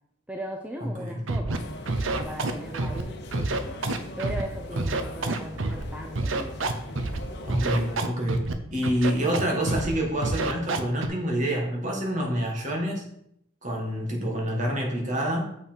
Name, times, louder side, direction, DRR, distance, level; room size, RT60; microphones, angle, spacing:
voice 1, 0.3-1.7 2.0-3.8 4.2-6.6, right 1 dB, 5° right, 2 dB, 0.6 m, -38 dB
voice 2, 0.8-1.2 4.7-4.8 7.4-13.0 13.6-15.4, equal, 40° right, 0 dB, 1.7 m, -27 dB
Scratching (performance technique), 1.3-1.6 1.9-3.0 3.3-4.4 4.8-5.8 6.2-7.2 7.5-8.5 8.8-9.4 9.7-9.9 10.2-11.1, right 2 dB, 85° right, 0.7 m, -27 dB
sound 1, 1.5-8.0, left 2 dB, 60° left, 0.9 m, -41 dB
7.0 x 5.6 x 4.5 m, 0.75 s
head